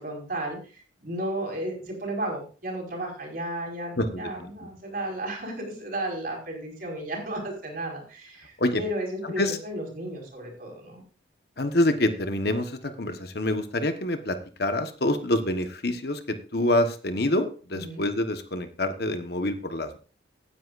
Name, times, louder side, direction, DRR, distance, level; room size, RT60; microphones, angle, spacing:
voice 1, 0.0-11.0 17.7-18.0, right 1 dB, 50° right, 0 dB, 5.0 m, -34 dB
voice 2, 4.0-4.5 8.6-8.8 9.4-9.6 11.6-20.0, left 1 dB, 60° left, 8 dB, 1.2 m, -26 dB
16.5 x 10.0 x 2.5 m, 0.36 s
head